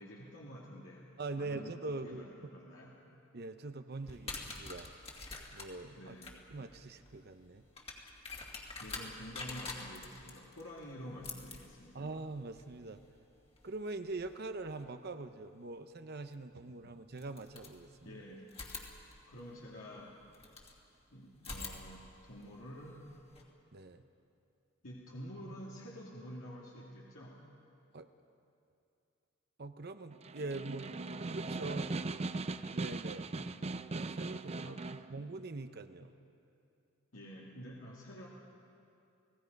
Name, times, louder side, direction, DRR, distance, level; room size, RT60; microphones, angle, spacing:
voice 1, 0.0-1.8 2.0-3.0 6.0-6.5 8.8-12.0 18.0-18.6 19.3-20.2 21.1-23.0 24.8-27.4 33.4-33.7 34.6-35.3 37.1-38.3, equal, 75° left, -5 dB, 2.5 m, -49 dB
voice 2, 1.2-2.5 3.3-4.9 5.5-6.2 6.5-7.6 11.9-13.0 13.6-18.2 23.7-24.0 27.9-28.1 29.6-30.9 31.3-31.9 32.7-33.3 33.9-36.1, right 3 dB, 50° right, 9 dB, 0.8 m, -43 dB
sound 1, 4.0-14.8 16.3-16.4 17.1-18.1 18.5-20.8 21.4-23.4, left 3 dB, 30° left, 2.3 m, -48 dB
Snare drum, 30.1-35.1, right 3 dB, 30° right, 0.5 m, -39 dB
30.0 x 18.0 x 5.4 m, 2.5 s
head